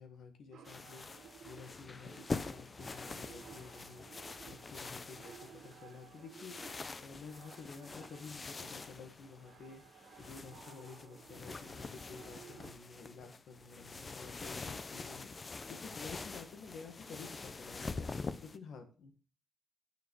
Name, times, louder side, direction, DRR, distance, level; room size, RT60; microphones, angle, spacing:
voice 1, 0.0-19.1, left 5 dB, 85° left, 6 dB, 1.7 m, -52 dB
sound 1, 0.5-12.7, right 9 dB, 90° right, 0.9 m, -57 dB
sound 2, 0.6-18.6, left 4 dB, 35° left, 0.6 m, -45 dB
9.2 x 6.9 x 4.6 m, 0.38 s
cardioid pair, 95°, 0 cm